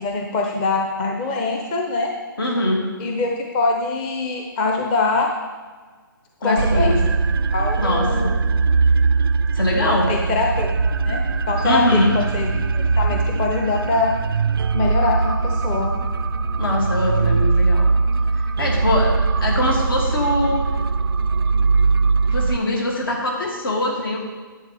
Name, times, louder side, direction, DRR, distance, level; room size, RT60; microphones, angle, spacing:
voice 1, 0.0-2.1 3.0-5.3 6.4-7.2 7.5-8.3 9.8-10.7 11.0-11.2 11.5-14.1 14.7-16.0, left 3 dB, 25° left, 1 dB, 0.7 m, -23 dB
voice 2, 2.4-2.9 6.4-7.0 7.8-8.4 9.5-10.2 11.6-12.1 16.6-17.9 18.4-20.6 22.3-24.2, left 1 dB, 75° left, -1 dB, 2.6 m, -22 dB
sound 1, 6.6-22.6, right 4 dB, 90° right, 0.4 m, -20 dB
10.5 x 7.9 x 3.4 m, 1.4 s
hypercardioid pair, 155°, 12 cm